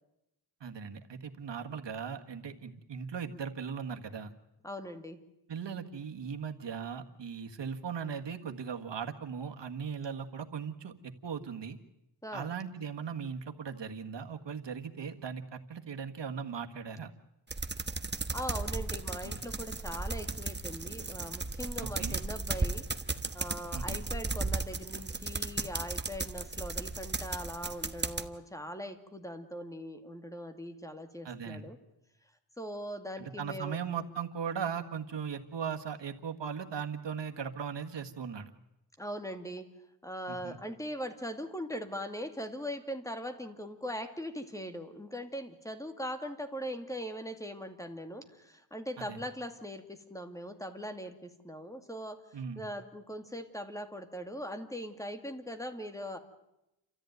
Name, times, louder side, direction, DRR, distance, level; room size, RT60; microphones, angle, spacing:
voice 1, 0.6-4.3 5.5-11.8 12.3-17.1 19.2-19.4 22.0-22.2 23.7-24.0 31.2-31.7 33.2-38.5 40.3-40.6 49.0-49.2 52.3-52.6, right 6 dB, 90° right, 6 dB, 1.7 m, -38 dB
voice 2, 4.6-5.2 12.2-12.5 18.3-22.9 23.3-31.8 32.6-33.8 39.0-39.7 40.0-52.2 52.6-56.2, equal, 10° left, 7 dB, 2.3 m, -40 dB
sound 1, 17.5-28.3, right 3 dB, 25° right, 1.3 m, -35 dB
29.0 x 14.0 x 9.3 m, 0.89 s
wide cardioid pair, 85°, 42 cm